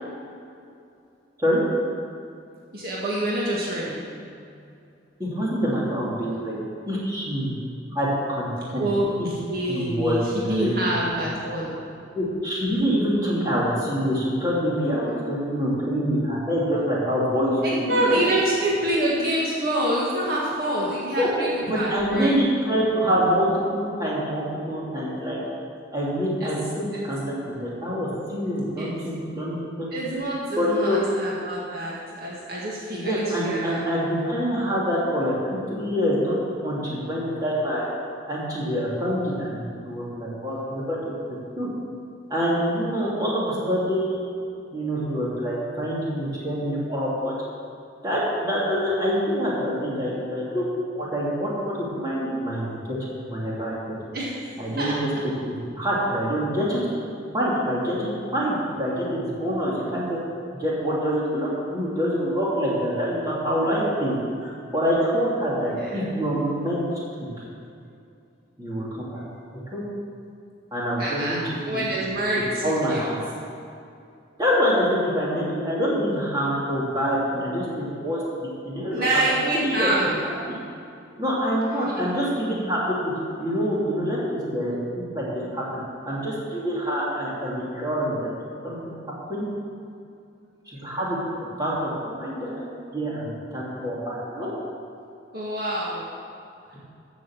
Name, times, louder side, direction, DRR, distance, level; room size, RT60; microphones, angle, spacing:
voice 1, 2.7-4.0 4.5-4.6 8.8-11.7 17.6-22.3 26.4-26.5 28.8-28.9 29.9-33.8 54.1-54.9 65.5-66.1 71.0-71.4 71.6-73.0 78.9-80.2 81.8-82.1 95.3-96.0, right 1 dB, 50° right, -6 dB, 1.9 m, -26 dB
voice 2, 5.2-6.5 6.9-7.5 7.9-8.9 9.2-9.3 9.7-10.9 12.1-18.3 21.1-21.3 21.6-25.4 25.9-29.9 30.6-31.0 32.9-36.4 36.6-37.9 38.3-41.0 41.6-41.7 42.3-44.3 44.7-47.3 48.0-50.6 50.9-53.0 53.3-53.9 54.6-55.1 55.5-56.8 57.3-60.2 60.6-66.8 67.2-67.4 68.6-69.2 69.7-69.8 70.7-71.4 71.7-71.8 72.6-73.2 74.4-79.2 79.5-79.9 80.2-80.6 81.2-83.0 83.4-85.6 86.0-88.3 88.6-88.9 89.3-89.4 90.7-94.5, equal, 20° right, -7 dB, 3.0 m, -26 dB
14.0 x 6.3 x 7.4 m, 2.5 s
head